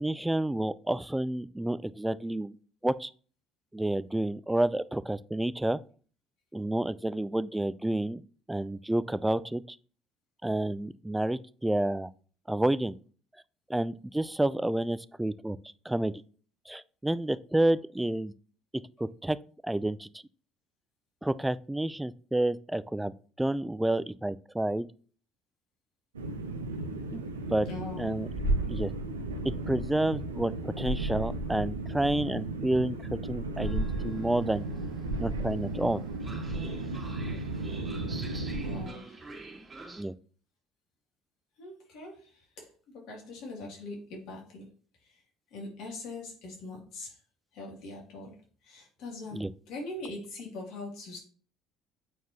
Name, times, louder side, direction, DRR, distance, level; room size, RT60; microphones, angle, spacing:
voice 1, 0.0-2.6 2.8-3.1 3.7-5.8 6.5-8.2 8.5-9.8 10.4-12.1 12.5-12.9 13.7-15.6 15.9-16.1 16.7-18.3 18.7-19.4 19.6-20.1 21.2-23.1 23.4-24.9 27.1-27.2 27.5-27.7 28.0-28.3 28.7-28.9 29.4-33.0 33.2-34.7 35.2-36.0 40.0-40.1 49.3-49.5, right 1 dB, 10° right, 0.4 m, -29 dB
sound 1, 26.1-38.9, right 2 dB, 90° right, 0.7 m, -34 dB
voice 2, 27.7-28.1 38.6-39.2 41.6-44.7 45.0-45.2 45.5-47.2 47.5-48.4 48.6-51.2, left 2 dB, 65° left, 2.7 m, -42 dB
Train, 33.6-40.0, right 3 dB, 25° right, 2.6 m, -47 dB
8.0 x 4.6 x 2.9 m
hypercardioid pair, 55°, 0 cm